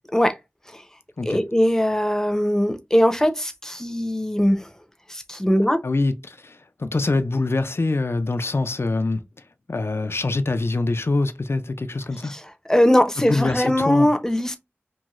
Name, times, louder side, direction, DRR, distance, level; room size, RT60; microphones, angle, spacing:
voice 1, 1.3-4.7 5.1-5.8 12.3-12.4 12.7-14.6, equal, 10° left, 0.6 m, -20 dB
voice 2, 5.8-9.2 9.7-12.4 13.2-14.1, left 2 dB, 65° left, 0.3 m, -24 dB
3.0 x 2.6 x 2.4 m
wide cardioid pair, 40°, 5 cm